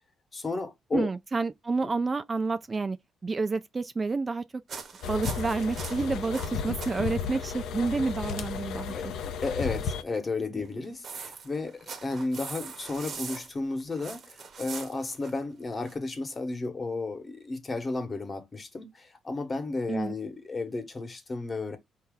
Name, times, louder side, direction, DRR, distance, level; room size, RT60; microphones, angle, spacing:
voice 1, 0.3-1.1 1.8-1.9 8.9-9.1 9.4-21.8, left 3 dB, 30° left, 1.2 m, -33 dB
voice 2, 0.9-3.0 3.2-4.4 5.1-8.9 10.5-10.6 19.9-20.1, right 4 dB, 30° right, 0.4 m, -29 dB
sound 1, 4.7-6.9 7.2-7.4 7.9-8.0 10.7-15.9, right 5 dB, 50° right, 1.0 m, -42 dB
sound 2, 5.0-10.0, left 6 dB, 80° left, 0.6 m, -34 dB
4.5 x 2.8 x 3.7 m
cardioid pair, 90°, 0 cm